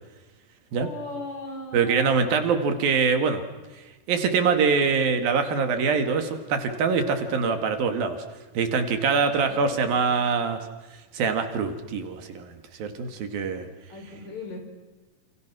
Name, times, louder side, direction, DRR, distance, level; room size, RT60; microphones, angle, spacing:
voice 1, 0.7-2.5 9.1-10.0 13.9-14.6, left 2 dB, 45° left, 3 dB, 6.9 m, -39 dB
voice 2, 1.7-3.4 4.1-8.2 8.6-10.6 11.1-12.5 12.8-13.7, right 5 dB, 70° right, 7 dB, 3.8 m, -24 dB
29.0 x 28.5 x 6.2 m, 1.2 s
omnidirectional pair, 4.4 m